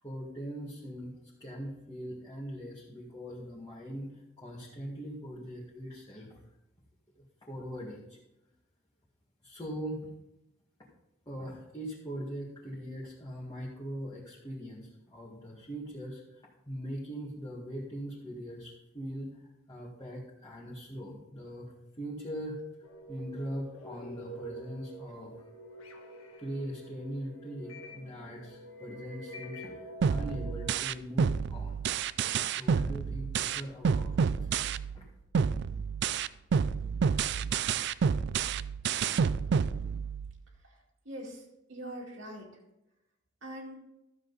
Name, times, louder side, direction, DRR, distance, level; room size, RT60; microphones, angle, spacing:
voice 1, 0.0-1.1 1.4-4.1 4.4-6.4 7.2-8.2 9.4-10.1 11.3-19.4 19.7-22.6 23.1-25.5 26.4-31.8 32.6-34.5 34.9-35.1, equal, 20° left, -6 dB, 1.8 m, -41 dB
sound 1, 22.8-30.8, right 1 dB, 90° left, 1.5 m, -47 dB
sound 2, 30.0-35.0 35.3-40.4, right 6 dB, 55° right, 0.3 m, -29 dB
voice 2, 40.6-42.6 43.4-43.8, right 1 dB, 75° right, -2 dB, 2.4 m, -44 dB
13.0 x 7.5 x 4.1 m, 0.90 s
head